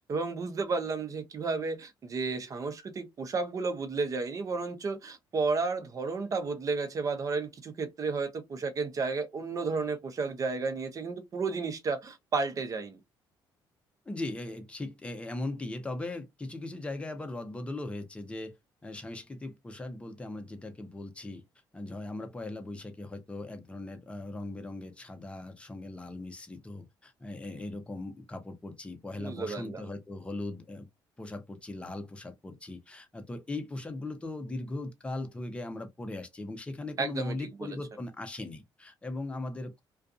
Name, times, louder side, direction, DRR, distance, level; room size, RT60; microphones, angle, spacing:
voice 1, 0.1-13.0 29.2-29.8 37.0-37.3 37.6-37.7, right 4 dB, 40° right, 0.7 m, -32 dB
voice 2, 14.1-18.5 18.8-21.4 21.7-30.9 31.2-39.8, left 2 dB, 15° left, 0.7 m, -39 dB
2.5 x 2.4 x 2.4 m
cardioid pair, 110°, 9 cm